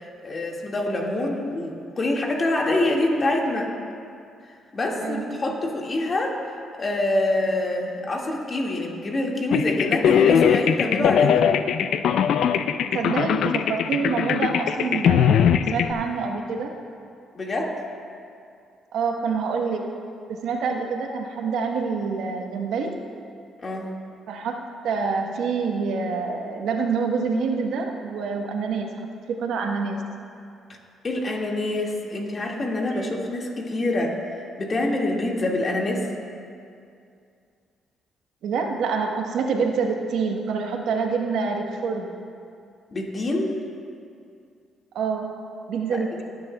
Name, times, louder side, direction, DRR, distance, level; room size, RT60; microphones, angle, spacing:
voice 1, 0.2-3.7 4.7-6.4 6.8-11.5 17.3-17.8 23.6-23.9 31.0-34.2 34.6-36.1 42.9-43.5 45.9-46.0, left 2 dB, 35° left, -1 dB, 1.8 m, -25 dB
voice 2, 5.0-5.4 11.0-11.1 12.9-15.4 15.7-16.7 18.9-20.0 20.3-22.9 24.3-24.6 24.8-30.0 32.9-33.2 38.4-42.1 44.9-46.2, right 5 dB, 80° right, 2 dB, 1.0 m, -27 dB
sound 1, 9.5-15.9, left 8 dB, 75° left, 0.4 m, -20 dB
18.0 x 10.0 x 2.2 m, 2.4 s
cardioid pair, 90°, 0 cm